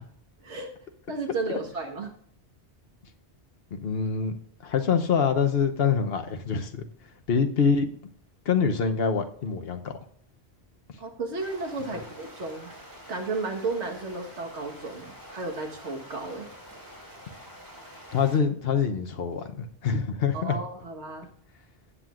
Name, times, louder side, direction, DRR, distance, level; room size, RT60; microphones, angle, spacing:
voice 1, 0.4-0.7 1.1-2.1 11.0-12.7 13.1-16.5 20.3-21.3, right 3 dB, 85° right, 3 dB, 1.8 m, -33 dB
voice 2, 3.7-4.3 4.6-6.8 7.3-7.9 8.5-9.9 18.1-20.6, left 6 dB, 65° left, 7 dB, 1.1 m, -25 dB
sound 1, 11.4-18.4, equal, 15° right, 2.5 m, -47 dB
18.0 x 7.5 x 2.5 m, 0.64 s
omnidirectional pair, 1.1 m